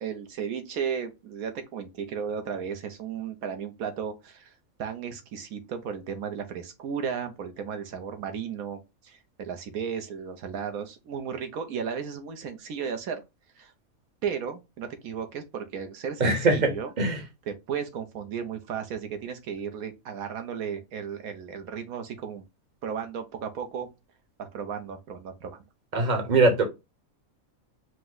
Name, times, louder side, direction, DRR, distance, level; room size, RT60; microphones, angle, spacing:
voice 1, 0.0-4.5 4.8-13.2 13.6-13.7 14.2-16.9 17.5-22.4 22.8-23.9 24.4-25.6, right 7 dB, 85° right, 1.3 m, -34 dB
voice 2, 16.2-16.7 17.0-17.2 25.9-26.6, right 3 dB, 35° right, 1.1 m, -21 dB
5.1 x 2.2 x 3.8 m
omnidirectional pair, 1.5 m